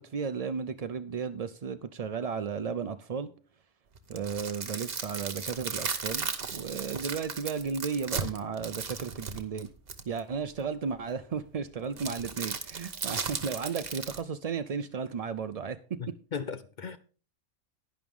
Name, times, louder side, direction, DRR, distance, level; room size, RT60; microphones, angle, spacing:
voice 1, 0.0-3.3 4.1-9.7 10.1-15.8, right 6 dB, 70° right, 0.3 m, -34 dB
sound 1, 4.0-10.2 12.0-14.2, right 5 dB, 50° right, 1.3 m, -36 dB
voice 2, 16.0-17.0, left 6 dB, 50° left, 0.6 m, -37 dB
11.0 x 10.5 x 3.6 m
omnidirectional pair, 1.3 m